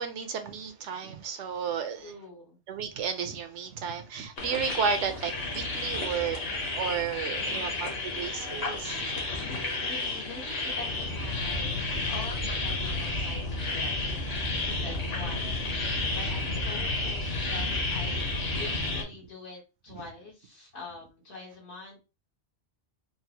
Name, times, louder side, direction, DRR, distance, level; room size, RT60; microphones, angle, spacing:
voice 1, 0.0-2.1 2.7-6.4 6.7-9.1 14.4-14.5 14.8-14.9 15.3-15.4 15.8-16.0, right 6 dB, 85° right, 1.0 m, -33 dB
voice 2, 2.0-2.6 7.3-8.2 9.4-22.0, left 3 dB, 75° left, 1.8 m, -45 dB
sound 1, 4.4-19.0, left 2 dB, 60° left, 1.2 m, -31 dB
4.4 x 2.1 x 2.8 m
omnidirectional pair, 1.2 m